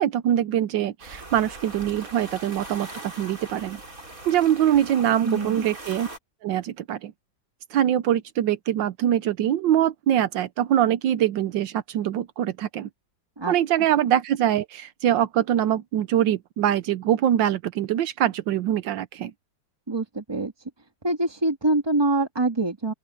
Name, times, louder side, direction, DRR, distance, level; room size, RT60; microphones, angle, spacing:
voice 1, 0.0-3.8 4.2-6.1 6.4-7.1 7.7-12.9 13.5-19.3, right 11 dB, 80° right, 1.4 m, -23 dB
sound 1, 1.0-6.2, right 2 dB, 45° right, 5.1 m, -40 dB
voice 2, 5.2-5.7 13.4-13.5 19.9-20.5 21.0-22.9, right 2 dB, 15° right, 1.7 m, -24 dB
open air
omnidirectional pair, 2.0 m